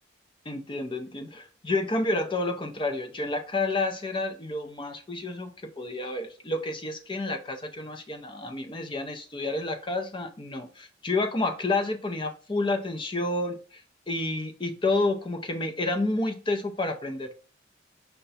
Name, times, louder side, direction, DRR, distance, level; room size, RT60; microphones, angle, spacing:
voice 1, 0.5-5.5 5.8-13.6 14.1-17.3, left 2 dB, 25° left, 7 dB, 0.5 m, -29 dB
5.6 x 2.2 x 4.0 m, 0.37 s
head